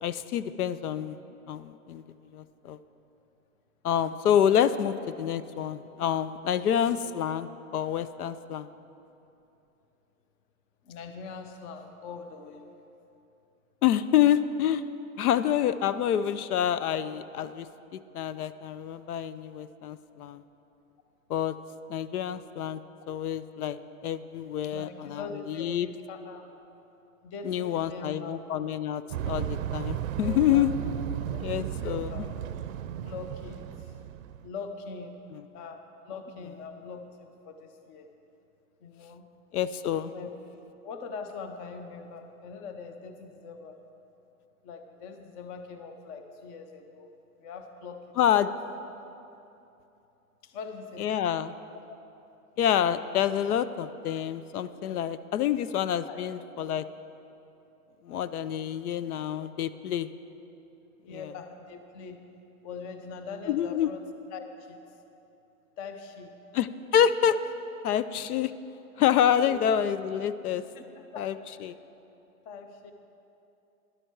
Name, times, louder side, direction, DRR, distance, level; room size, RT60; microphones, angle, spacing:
voice 1, 0.0-1.2 1.5-2.0 2.3-2.8 3.8-8.7 13.8-14.8 15.2-17.7 17.9-20.4 21.3-21.6 21.9-22.8 23.1-25.9 27.4-30.7 31.4-32.2 35.3-35.4 39.5-40.1 48.2-48.5 51.0-51.5 52.6-56.9 58.0-60.1 61.1-61.2 63.5-63.9 66.5-67.4 67.8-68.5 69.0-70.6 71.2-71.3 71.6-71.8, left 10 dB, 80° left, 14 dB, 0.6 m, -27 dB
voice 2, 10.8-12.7 24.6-26.5 27.2-28.4 30.2-30.9 31.5-32.3 33.0-34.0 34.4-35.2 35.5-38.1 38.8-39.2 40.1-40.3 40.8-43.8 44.6-47.1 47.4-48.1 48.3-48.4 50.4-51.1 51.9-52.0 53.3-53.4 56.1-56.3 61.1-62.2 62.6-64.0 64.3-64.8 65.8-66.3 67.2-67.4 69.4-69.6 70.8-71.4 72.4-72.9, left 5 dB, 25° left, 7 dB, 0.6 m, -42 dB
sound 1, 29.1-34.5, right 11 dB, 60° right, 0.5 m, -34 dB
11.0 x 10.0 x 4.6 m, 2.8 s
hypercardioid pair, 140°, 44 cm